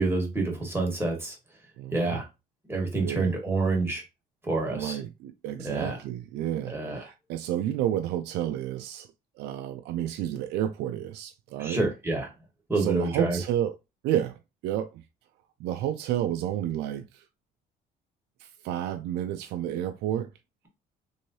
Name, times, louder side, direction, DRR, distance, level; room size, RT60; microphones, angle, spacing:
voice 1, 0.0-1.3 1.9-2.2 2.7-4.0 4.4-5.0 5.6-6.0 6.7-7.0 11.6-12.3 12.7-13.4, right 3 dB, 15° right, 1.4 m, -27 dB
voice 2, 1.8-2.2 3.0-3.3 4.7-9.1 9.4-11.8 12.8-13.8 14.0-15.0 15.6-17.2 18.4-20.3, right 11 dB, 80° right, 0.4 m, -31 dB
3.1 x 2.7 x 2.7 m
cardioid pair, 110°, 17 cm